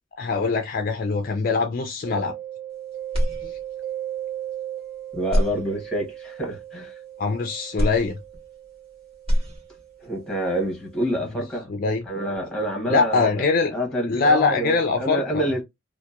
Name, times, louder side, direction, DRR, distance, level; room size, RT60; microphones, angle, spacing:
voice 1, 0.2-2.3 3.4-3.5 7.2-8.2 11.7-12.0 12.9-13.7 14.1-15.4, left 4 dB, 40° left, 0.3 m, -23 dB
Mallet percussion, 2.1-11.6, right 11 dB, 50° right, 0.4 m, -38 dB
sound 1, 3.1-4.0 4.5-4.6 5.2-6.3 7.8-8.9 9.1-10.1, equal, 30° right, 1.3 m, -26 dB
voice 2, 5.1-6.9 10.0-11.7 12.1-13.4 13.7-15.6, right 1 dB, 5° left, 0.9 m, -27 dB
2.7 x 2.1 x 2.3 m
head